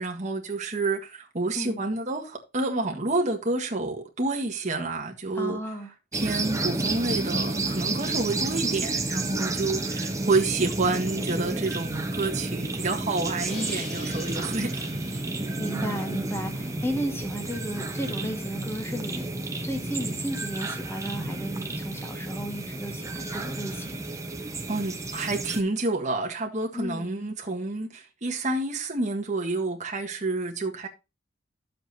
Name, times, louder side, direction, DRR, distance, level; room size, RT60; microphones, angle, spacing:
voice 1, 0.0-5.6 6.1-14.9 24.7-30.9, right 3 dB, 40° right, 1.7 m, -29 dB
voice 2, 5.3-5.9 15.6-19.3 19.6-24.0 26.7-27.1, equal, 15° left, 1.8 m, -34 dB
sound 1, 6.1-25.6, right 2 dB, 15° right, 1.1 m, -31 dB
Crash cymbal, 13.5-16.5, left 1 dB, 35° left, 6.2 m, -43 dB
11.0 x 7.7 x 2.8 m
head